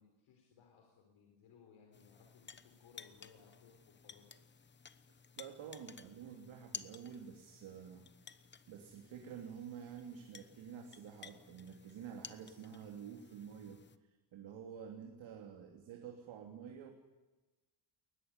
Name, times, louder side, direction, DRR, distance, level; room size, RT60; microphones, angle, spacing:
voice 1, 0.0-4.4, left 6 dB, 85° left, 1 dB, 4.7 m, -63 dB
sound 1, 1.9-14.0, left 6 dB, 25° left, 0.9 m, -55 dB
voice 2, 5.4-8.1 8.7-13.8 14.3-16.9, right 7 dB, 70° right, 3 dB, 2.9 m, -49 dB
21.5 x 19.5 x 9.6 m, 1.2 s
cardioid pair, 170°, 47 cm